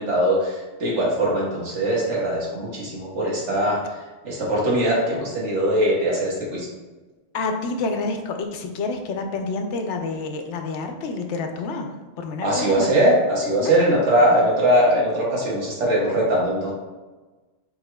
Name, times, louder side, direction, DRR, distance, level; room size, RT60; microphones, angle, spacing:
voice 1, 0.0-4.0 4.2-6.7 12.4-16.7, right 1 dB, 85° right, -5 dB, 1.6 m, -21 dB
voice 2, 7.3-11.9 12.2-12.9 13.6-13.7, left 3 dB, 85° left, 5 dB, 0.9 m, -28 dB
4.7 x 4.2 x 2.2 m, 1.2 s
omnidirectional pair, 1.2 m